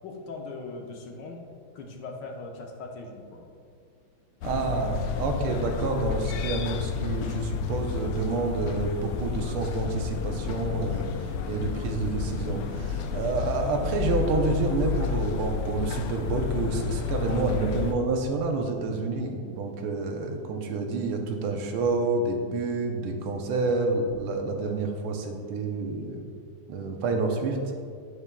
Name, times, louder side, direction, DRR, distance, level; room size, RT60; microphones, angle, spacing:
voice 1, 0.0-1.4 1.7-3.5, left 3 dB, 65° left, 1 dB, 1.3 m, -40 dB
sound 1, 4.4-17.9, left 7 dB, 85° left, 1.5 m, -31 dB
voice 2, 4.4-26.2 26.7-27.6, right 3 dB, 90° right, 3 dB, 1.7 m, -28 dB
9.7 x 7.1 x 2.3 m, 2.2 s
omnidirectional pair, 2.3 m